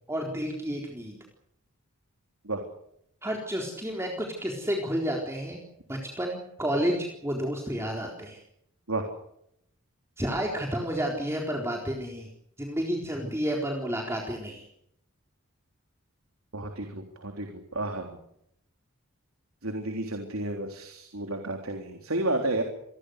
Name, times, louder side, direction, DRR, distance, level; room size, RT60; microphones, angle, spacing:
voice 1, 0.1-1.2 3.2-5.6 5.9-8.4 10.2-12.3 12.6-14.7, equal, 10° right, 0 dB, 4.1 m, -30 dB
voice 2, 16.5-18.1 19.6-22.6, right 2 dB, 80° right, 4 dB, 3.6 m, -31 dB
28.0 x 21.5 x 6.6 m, 0.76 s
head